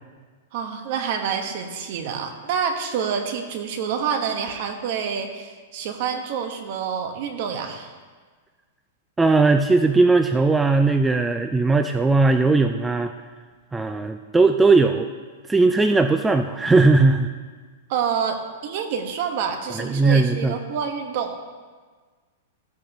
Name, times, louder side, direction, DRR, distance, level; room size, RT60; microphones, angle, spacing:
voice 1, 0.5-7.9 17.9-21.4, right 7 dB, 50° right, 5 dB, 1.3 m, -27 dB
voice 2, 9.2-13.1 13.7-15.1 15.5-17.3 19.7-20.6, right 3 dB, 10° right, 7 dB, 0.4 m, -18 dB
15.5 x 8.6 x 3.0 m, 1.5 s
hypercardioid pair, 150°, 0 cm